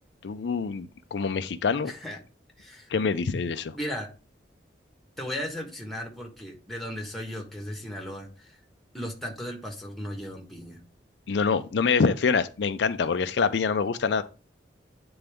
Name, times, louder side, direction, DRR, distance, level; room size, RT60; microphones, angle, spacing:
voice 1, 0.2-1.9 2.9-3.7 11.3-14.2, left 5 dB, 70° left, 0.4 m, -25 dB
voice 2, 1.8-2.2 2.6-2.9 3.7-4.1 5.2-8.6 8.9-10.8, equal, ahead, 1.4 m, -36 dB
9.0 x 3.9 x 3.5 m
head